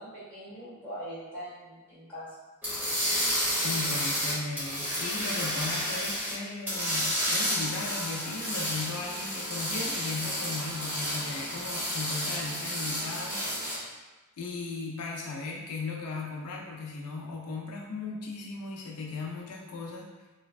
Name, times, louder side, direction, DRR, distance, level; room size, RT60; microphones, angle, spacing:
voice 1, 0.0-2.3, equal, 5° left, -11 dB, 1.4 m, -42 dB
sound 1, 2.6-6.4 6.7-13.8, equal, 10° right, 1.1 m, -31 dB
voice 2, 3.6-13.5 14.4-20.1, left 3 dB, 85° left, -1 dB, 0.4 m, -37 dB
3.1 x 2.2 x 2.4 m, 1.2 s
head